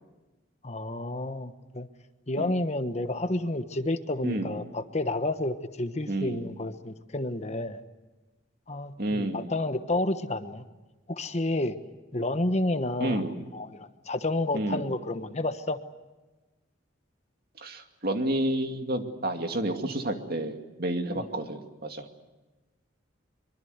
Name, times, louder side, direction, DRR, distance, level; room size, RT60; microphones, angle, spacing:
voice 1, 0.6-1.9 2.3-7.8 8.7-10.6 11.1-11.7 12.1-13.2 13.5-15.8, left 2 dB, 35° left, 9 dB, 1.2 m, -30 dB
voice 2, 6.1-6.5 9.0-9.5 13.0-13.3 14.5-14.8 17.6-22.1, right 1 dB, 50° right, 5 dB, 2.4 m, -30 dB
24.0 x 24.0 x 8.1 m, 1.1 s
head